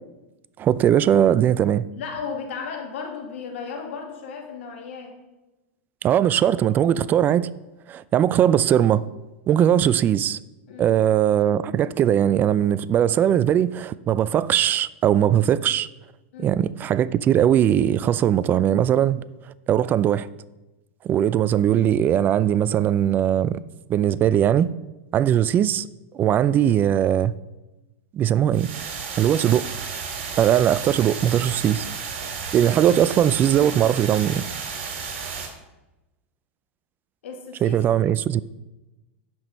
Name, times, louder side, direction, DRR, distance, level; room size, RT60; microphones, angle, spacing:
voice 1, 0.6-1.8 6.0-7.5 7.9-9.1 9.5-10.4 10.8-15.9 16.4-19.2 19.7-20.3 21.0-23.6 23.9-24.7 25.1-25.9 26.1-27.3 28.1-28.7 29.2-29.7 30.4-31.9 32.5-34.4 37.6-38.4, right 10 dB, 30° right, 0.4 m, -20 dB
voice 2, 1.9-5.1 10.7-10.9 16.3-16.5 37.2-37.8, left 5 dB, 75° left, 2.3 m, -34 dB
sound 1, 28.5-35.5, right 6 dB, 65° right, 2.8 m, -33 dB
9.5 x 6.2 x 5.2 m
supercardioid pair, 125°, 7 cm